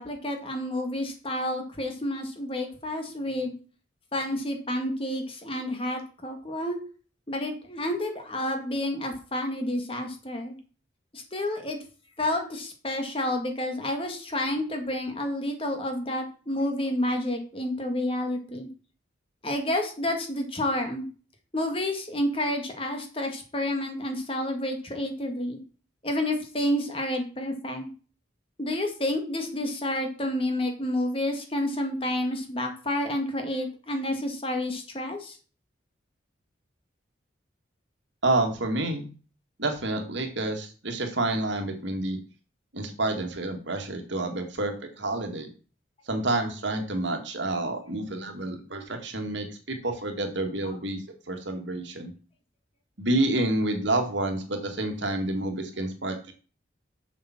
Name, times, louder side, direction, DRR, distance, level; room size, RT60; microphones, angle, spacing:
voice 1, 0.0-3.5 4.1-6.8 7.3-10.6 11.1-11.8 12.2-18.7 19.4-21.1 21.5-25.6 26.0-27.9 28.6-35.4 50.7-50.8, left 1 dB, 30° left, 4 dB, 1.9 m, -29 dB
voice 2, 38.2-39.1 39.6-42.2 42.7-45.5 46.1-51.0 51.3-52.1 53.0-56.3, right 2 dB, 75° right, 4 dB, 2.1 m, -29 dB
7.3 x 7.0 x 6.0 m, 0.37 s
head